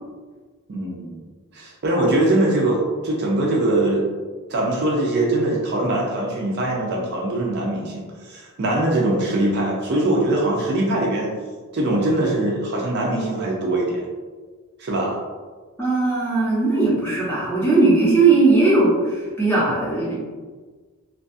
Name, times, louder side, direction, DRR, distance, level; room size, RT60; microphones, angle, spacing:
voice 1, 0.7-1.2 1.5-4.0 4.5-11.3 11.7-14.0 14.8-15.2, right 1 dB, 50° right, -2 dB, 0.4 m, -22 dB
voice 2, 15.8-20.1, right 3 dB, 10° left, -7 dB, 0.7 m, -18 dB
2.5 x 2.3 x 2.5 m, 1.4 s
head